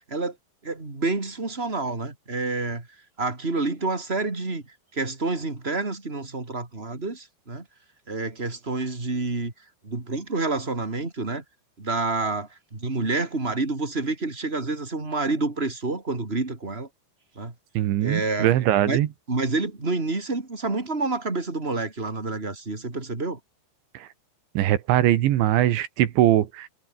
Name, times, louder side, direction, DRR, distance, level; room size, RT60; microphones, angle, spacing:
voice 1, 0.6-2.9 3.2-4.6 4.9-7.6 8.1-9.5 9.8-11.4 11.8-16.9 17.3-17.5 18.0-18.5 18.8-19.0 19.3-23.4, right 3 dB, 15° right, 3.1 m, -28 dB
voice 2, 17.8-19.1 24.0-24.1 24.6-26.7, right 13 dB, 80° right, 3.9 m, -21 dB
omnidirectional pair, 5.3 m